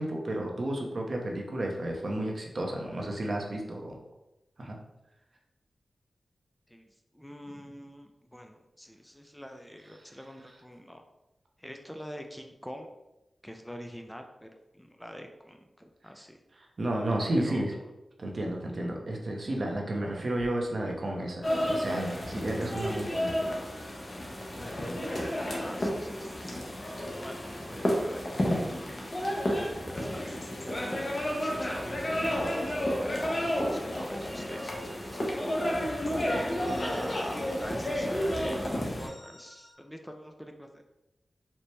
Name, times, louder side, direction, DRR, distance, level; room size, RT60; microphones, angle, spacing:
voice 1, 0.0-4.0 4.6-4.8 16.8-17.7 18.2-23.5, right 1 dB, 60° right, 1 dB, 0.7 m, -32 dB
voice 2, 6.7-11.0 11.6-12.9 13.4-16.4 17.3-17.7 25.6-35.3 36.1-40.8, equal, 5° left, 4 dB, 0.4 m, -45 dB
sound 1, 20.4-20.6 22.2-22.9 24.6-25.5 27.0-27.7 29.4-30.9 31.8-33.4 34.2-35.8 36.6-38.1 39.0-39.7, left 1 dB, 80° left, 1.1 m, -48 dB
sound 2, 21.4-39.1, equal, 50° left, 0.8 m, -31 dB
4.3 x 2.1 x 3.2 m, 0.93 s
cardioid pair, 50°, 0 cm